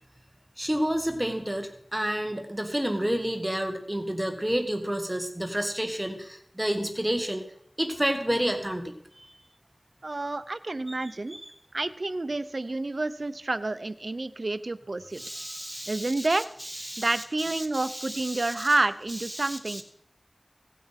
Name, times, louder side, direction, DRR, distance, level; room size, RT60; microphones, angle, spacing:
voice 1, 0.6-7.4 7.8-8.9 11.3-11.4 15.2-18.7 19.3-19.8, equal, 20° right, 6 dB, 1.7 m, -30 dB
voice 2, 10.0-11.4 11.7-15.2 15.9-16.5 17.0-19.8, right 2 dB, 75° right, 13 dB, 0.7 m, -29 dB
17.0 x 8.5 x 5.8 m, 0.68 s
wide cardioid pair, 50°, 0 cm